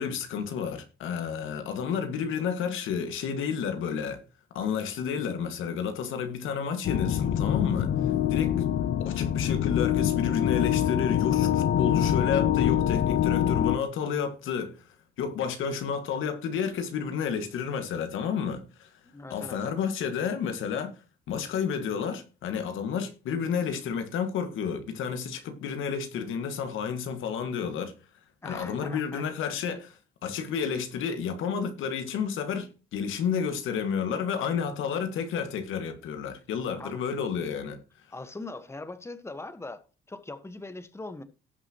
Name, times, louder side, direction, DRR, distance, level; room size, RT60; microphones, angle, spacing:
voice 1, 0.0-4.2 4.5-7.9 8.3-8.5 9.1-14.8 15.2-18.9 19.3-21.0 21.3-27.9 28.4-37.8, left 7 dB, 85° left, 1.8 m, -31 dB
sound 1, 6.8-13.8, left 10 dB, 60° left, 0.8 m, -25 dB
voice 2, 19.0-19.6 28.4-29.2 36.8-37.0 38.1-39.8 40.1-41.2, left 2 dB, 15° left, 1.2 m, -40 dB
18.0 x 6.1 x 2.9 m
cardioid pair, 90°, 20 cm